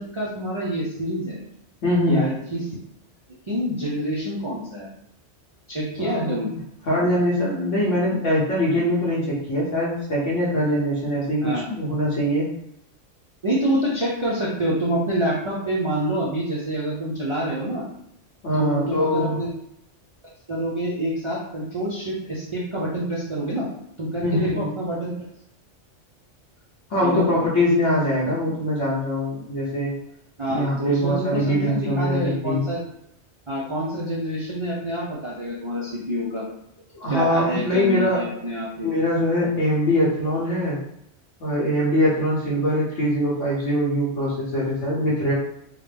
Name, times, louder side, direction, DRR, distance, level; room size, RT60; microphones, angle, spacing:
voice 1, 0.0-1.4 2.1-2.8 3.5-4.9 5.7-6.5 11.4-11.6 13.4-17.8 18.5-19.5 20.5-23.7 24.0-25.1 27.0-27.3 30.4-32.8 33.5-36.4 37.1-38.9, right 1 dB, 40° right, -6 dB, 0.4 m, -27 dB
voice 2, 1.8-2.2 6.0-6.5 6.9-12.5 18.4-19.4 24.2-24.7 26.9-29.9 30.5-32.6 37.0-38.2 38.8-40.8 41.4-45.3, left 1 dB, 80° left, -6 dB, 1.3 m, -22 dB
3.6 x 2.1 x 3.3 m, 0.77 s
omnidirectional pair, 1.3 m